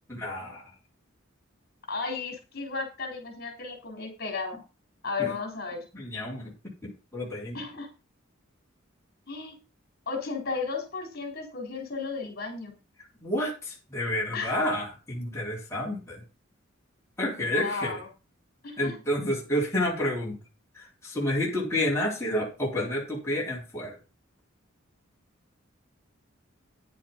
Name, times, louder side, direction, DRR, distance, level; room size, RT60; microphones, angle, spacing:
voice 1, 0.1-0.6 5.2-5.3 5.9-6.5 6.8-7.6 13.2-16.2 17.2-18.0 18.8-20.4 20.7-24.0, left 1 dB, 15° left, -4 dB, 3.7 m, -30 dB
voice 2, 1.9-4.6 5.0-5.8 7.5-7.9 9.3-9.6 10.1-12.7 14.3-14.6 17.4-18.1 18.6-19.0, left 4 dB, 50° left, 2 dB, 4.0 m, -34 dB
10.0 x 7.6 x 5.3 m, 0.31 s
head